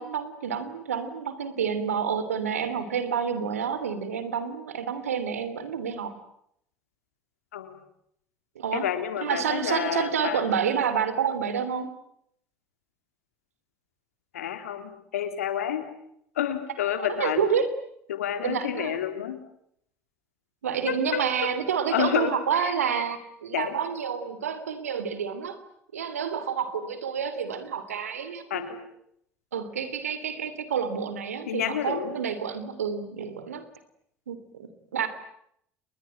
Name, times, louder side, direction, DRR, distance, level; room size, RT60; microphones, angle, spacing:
voice 1, 0.0-6.1 8.5-8.9 9.2-11.9 17.0-17.7 18.4-19.0 20.6-25.6 25.9-28.7 29.5-33.6 34.3-35.1, right 7 dB, 90° right, 12 dB, 2.9 m, -29 dB
voice 2, 8.7-10.4 14.3-15.8 16.4-17.5 18.1-19.4 20.9-21.5 21.9-22.3 22.6-23.0 23.5-23.8 28.5-28.8 31.5-32.2, left 10 dB, 85° left, 9 dB, 3.6 m, -29 dB
30.0 x 21.5 x 9.0 m, 0.73 s
hypercardioid pair, 65°, 8 cm